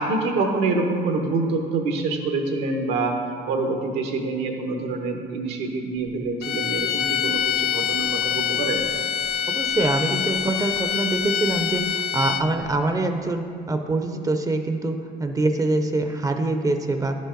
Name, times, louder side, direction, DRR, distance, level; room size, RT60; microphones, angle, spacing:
voice 1, 0.0-3.1 3.5-8.8, right 3 dB, 90° right, 3 dB, 1.0 m, -26 dB
sound 1, 6.4-12.6, left 9 dB, 70° left, 0.5 m, -25 dB
voice 2, 9.5-17.1, right 2 dB, 20° right, 6 dB, 0.5 m, -24 dB
11.0 x 5.4 x 3.8 m, 2.2 s
cardioid pair, 110°, 17 cm